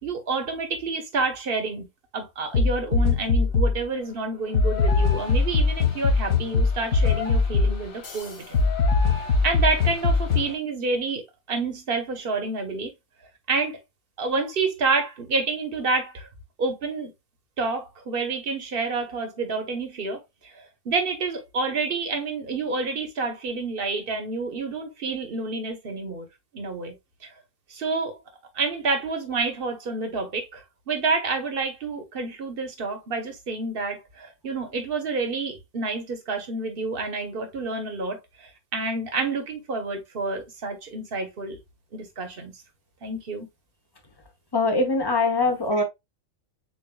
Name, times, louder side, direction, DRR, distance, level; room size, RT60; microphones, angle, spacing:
voice 1, 0.0-1.9 2.1-8.7 9.2-11.2 11.5-12.9 13.5-13.8 14.2-16.3 16.6-17.1 17.6-26.3 26.5-26.9 27.2-27.3 27.7-28.2 28.5-41.6 41.9-42.5 43.0-43.5, right 3 dB, 45° right, 1.1 m, -29 dB
sound 1, 2.5-3.8 4.5-10.5, left 4 dB, 85° left, 1.6 m, -22 dB
voice 2, 44.5-45.8, left 2 dB, 20° left, 0.7 m, -22 dB
7.2 x 2.5 x 2.2 m
omnidirectional pair, 1.4 m